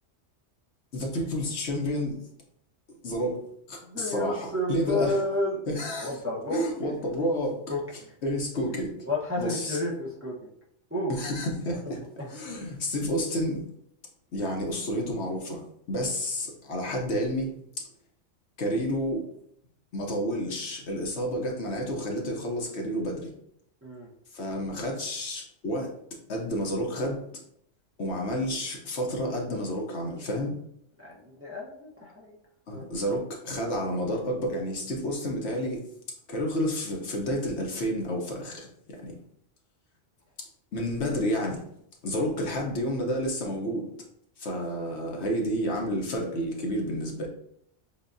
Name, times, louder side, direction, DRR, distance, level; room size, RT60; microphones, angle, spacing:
voice 1, 0.9-2.2 3.0-5.2 5.7-6.2 6.5-7.6 7.9-8.9 9.4-9.8 11.1-13.6 14.3-17.9 18.6-19.3 19.9-23.3 24.3-25.9 26.3-27.2 28.0-30.5 32.7-35.9 36.3-39.1 40.4-41.7 42.0-43.9 44.4-47.3, equal, 65° left, 0 dB, 1.1 m, -30 dB
voice 2, 3.9-5.6 6.0-6.6 7.7-7.8 9.1-10.5 10.9-11.1 12.2-12.3 23.8-24.1 31.0-32.3 32.7-32.8, left 1 dB, 15° right, -5 dB, 0.7 m, -31 dB
6.9 x 2.4 x 2.6 m, 0.71 s
omnidirectional pair, 1.3 m